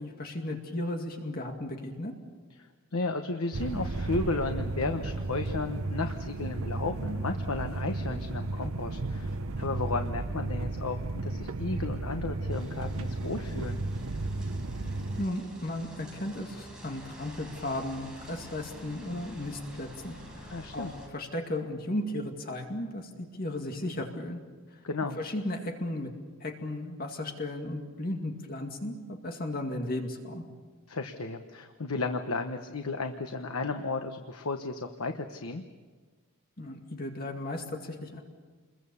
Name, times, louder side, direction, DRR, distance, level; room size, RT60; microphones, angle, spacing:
voice 1, 0.0-2.1 15.2-24.4 24.7-24.8 25.2-26.1 26.4-30.4 36.6-38.2, left 1 dB, 45° left, 3 dB, 2.2 m, -35 dB
voice 2, 2.6-13.8 20.5-20.9 24.8-25.2 30.9-35.6, left 3 dB, 90° left, 6 dB, 1.1 m, -34 dB
sound 1, 3.5-15.3, right 2 dB, 75° right, 0.8 m, -34 dB
sound 2, 12.5-21.1, equal, 5° right, 4.7 m, -47 dB
28.5 x 22.0 x 7.1 m, 1.4 s
head